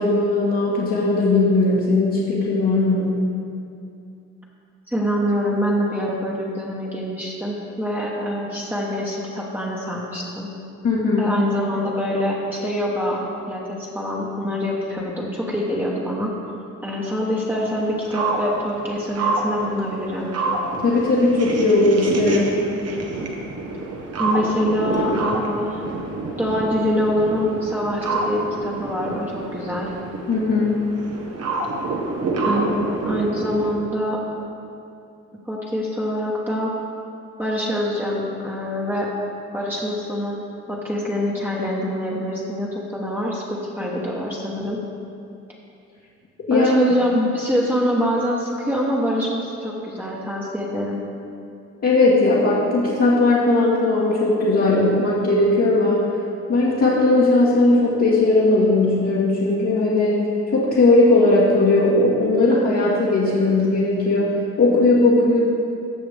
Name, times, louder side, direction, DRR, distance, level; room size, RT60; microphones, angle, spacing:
voice 1, 0.0-3.2 10.8-11.4 20.8-22.5 30.3-30.8 46.5-46.7 51.8-56.1 56.5-65.5, left 2 dB, 55° left, -7 dB, 1.7 m, -18 dB
voice 2, 4.9-10.5 11.2-16.3 16.8-20.3 24.2-25.8 26.4-30.0 32.4-34.2 35.4-36.7 37.4-39.1 39.5-40.4 40.7-44.8 46.5-51.0, equal, 5° right, -5 dB, 1.3 m, -25 dB
sound 1, 17.5-33.7, right 3 dB, 55° right, 1.3 m, -27 dB
15.5 x 5.9 x 3.5 m, 2.5 s
cardioid pair, 90°, 30 cm